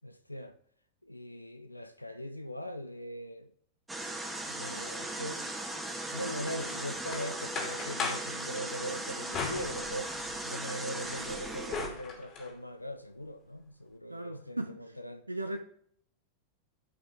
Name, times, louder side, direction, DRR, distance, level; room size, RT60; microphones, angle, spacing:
voice 1, 0.0-0.6 1.0-3.5 4.4-5.4 6.1-15.3, equal, 85° left, 0.5 m, -41 dB
sound 1, 3.9-11.9, right 1 dB, 10° right, 1.7 m, -38 dB
sound 2, 6.6-8.3 9.3-10.4 10.8-12.5, left 4 dB, 35° left, 2.7 m, -39 dB
voice 2, 14.1-14.8 15.3-15.6, right 1 dB, 85° right, 0.6 m, -36 dB
12.5 x 5.5 x 3.6 m
figure-of-eight pair, 90°, 0 cm